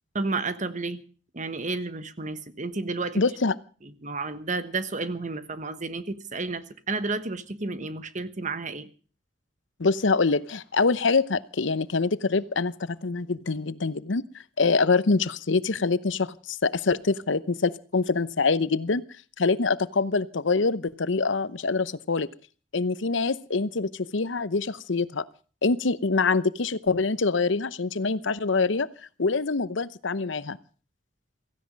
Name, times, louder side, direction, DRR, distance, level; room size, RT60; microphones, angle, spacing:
voice 1, 0.1-1.0 1.3-3.2 4.0-8.9, right 3 dB, 40° right, 1.3 m, -31 dB
voice 2, 3.2-3.5 9.8-12.7 13.0-14.2 14.6-19.0 19.4-22.3 22.7-25.2 25.6-28.9 29.2-30.6, left 4 dB, 80° left, 0.8 m, -25 dB
16.5 x 15.5 x 5.2 m
head